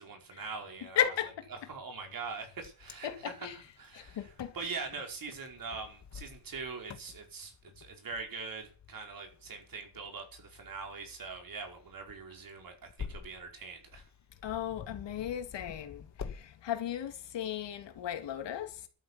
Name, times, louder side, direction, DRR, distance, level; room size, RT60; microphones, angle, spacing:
voice 1, 0.0-1.0 1.5-3.5 3.8-14.0, right 4 dB, 50° right, 5.2 m, -43 dB
voice 2, 0.9-1.4 3.0-3.6 3.9-4.7 14.4-18.9, left 9 dB, 80° left, 2.8 m, -35 dB
Wind, 2.2-16.4, left 6 dB, 40° left, 1.9 m, -49 dB
12.5 x 10.0 x 8.4 m
cardioid pair, 125°, 42 cm